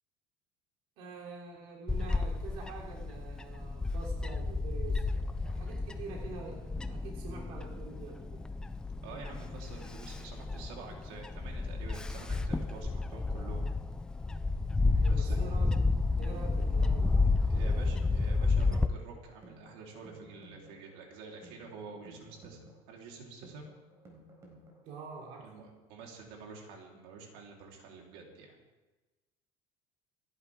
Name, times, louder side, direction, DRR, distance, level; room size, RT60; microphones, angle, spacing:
voice 1, 1.0-8.4 15.0-15.9 16.2-18.1 24.8-25.5, right 4 dB, 55° right, -2 dB, 3.2 m, -46 dB
Bird / Wind, 1.9-18.9, left 3 dB, 5° left, 0.4 m, -31 dB
voice 2, 9.0-13.6 15.1-15.4 17.4-22.6 22.9-23.7 25.4-28.6, right 4 dB, 75° right, -1 dB, 3.8 m, -48 dB
sound 1, 17.2-25.2, right 1 dB, 25° right, 4.1 m, -57 dB
26.5 x 11.5 x 3.7 m, 1.1 s
cardioid pair, 175°, 12 cm